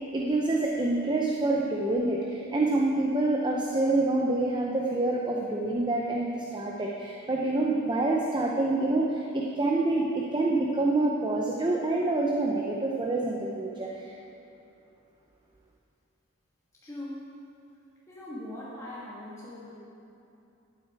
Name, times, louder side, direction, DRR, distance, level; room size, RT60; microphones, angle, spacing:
voice 1, 0.1-14.1, right 2 dB, 20° right, -1 dB, 0.7 m, -27 dB
voice 2, 16.8-17.4 18.1-19.7, left 1 dB, 15° left, -8 dB, 1.5 m, -40 dB
12.5 x 8.2 x 4.7 m, 2.7 s
head